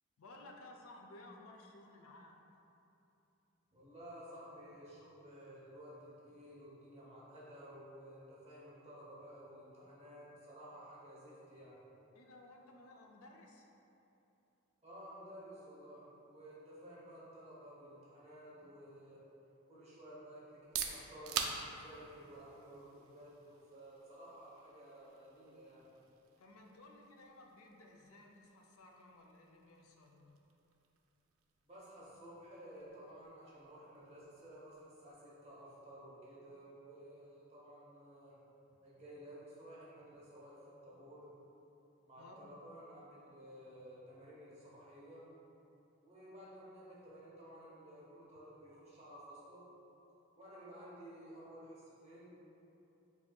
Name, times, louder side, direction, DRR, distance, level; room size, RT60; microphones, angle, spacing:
voice 1, 0.2-2.4 12.1-13.7 26.4-30.4 42.2-42.5, left 2 dB, 90° left, 1 dB, 0.5 m, -57 dB
voice 2, 3.7-11.8 14.8-19.2 19.7-25.8 31.6-38.4 38.8-41.3 42.1-45.2 46.0-49.6 50.4-52.3, equal, 30° right, -8 dB, 0.8 m, -54 dB
sound 1, 20.5-36.1, right 7 dB, 80° right, 0.3 m, -49 dB
6.9 x 2.7 x 2.2 m, 2.9 s
head